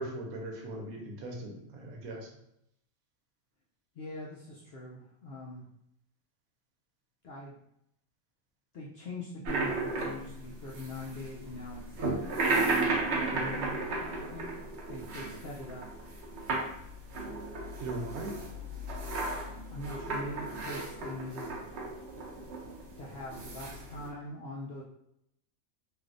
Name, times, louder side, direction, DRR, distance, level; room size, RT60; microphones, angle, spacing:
voice 1, 0.0-2.3 17.8-18.3, right 2 dB, 80° right, 1 dB, 1.2 m, -39 dB
voice 2, 4.0-5.6 7.2-7.6 8.7-12.1 13.2-14.5 14.9-15.9 19.7-21.6 23.0-24.8, left 1 dB, 70° left, -4 dB, 0.6 m, -42 dB
sound 1, 9.4-24.1, right 3 dB, 60° right, 0.8 m, -34 dB
3.3 x 2.5 x 2.5 m, 0.78 s
omnidirectional pair, 1.5 m